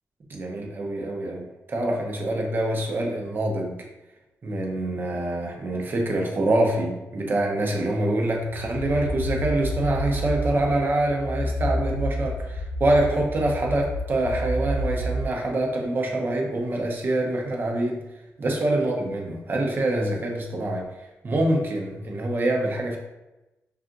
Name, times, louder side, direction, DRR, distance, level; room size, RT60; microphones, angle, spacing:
voice 1, 0.3-3.8 4.4-18.0 18.4-20.9 21.2-23.0, right 1 dB, 40° right, 0 dB, 0.8 m, -25 dB
sound 1, 8.4-15.2, left 1 dB, 80° left, 0.5 m, -29 dB
5.6 x 2.4 x 2.5 m, 1.0 s
cardioid pair, 110°, 5 cm